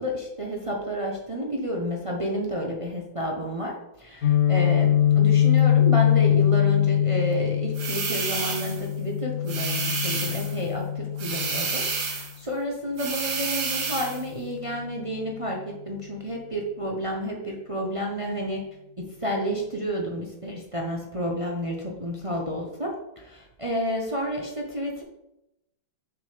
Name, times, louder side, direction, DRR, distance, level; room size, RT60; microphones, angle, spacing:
voice 1, 0.0-18.6 19.0-25.0, equal, 30° right, -1 dB, 0.6 m, -30 dB
Guitar, 4.2-12.1, left 10 dB, 50° left, 1.3 m, -22 dB
sound 1, 7.7-8.9 9.5-10.6 11.2-12.4 13.0-14.2, right 4 dB, 65° right, 1.7 m, -30 dB
6.4 x 5.0 x 5.0 m, 0.88 s
omnidirectional pair, 2.0 m